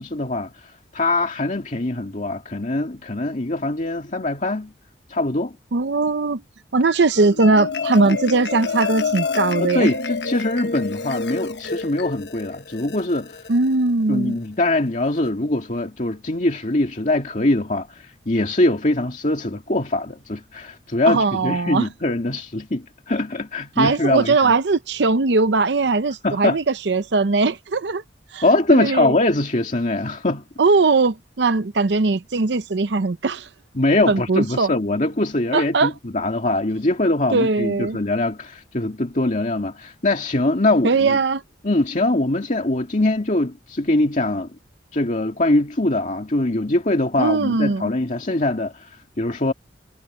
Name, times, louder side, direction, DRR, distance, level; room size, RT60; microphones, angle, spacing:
voice 1, 0.0-4.7 5.1-5.5 8.1-8.2 9.6-13.4 14.1-24.5 26.2-26.6 28.4-30.4 33.7-41.2 41.6-44.5 44.9-49.5, left 2 dB, 40° left, 2.1 m, -22 dB
voice 2, 5.7-6.4 6.7-9.9 13.5-14.4 21.1-21.9 23.8-28.0 28.3-28.4 28.7-29.1 30.6-33.5 34.1-34.7 35.5-35.9 37.3-38.0 40.8-41.4 47.2-47.9, right 3 dB, 65° right, 0.7 m, -19 dB
Marimba xylophone, 7.1-13.7, left 4 dB, 65° left, 1.1 m, -28 dB
head